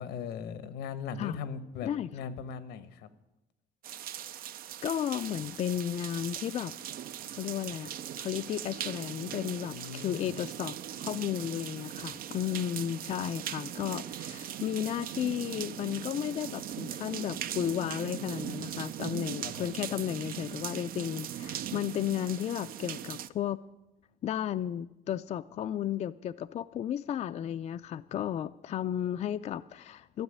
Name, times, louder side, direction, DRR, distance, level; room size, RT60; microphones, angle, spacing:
voice 1, 0.0-3.1 9.7-10.3 19.4-19.7, left 6 dB, 90° left, 1.1 m, -39 dB
sound 1, 3.8-23.3, right 11 dB, 60° right, 0.5 m, -40 dB
voice 2, 4.8-6.7 7.3-7.9 8.2-23.6 24.2-30.2, left 10 dB, 40° left, 0.4 m, -33 dB
13.5 x 7.2 x 9.7 m
cardioid pair, 110°, 17 cm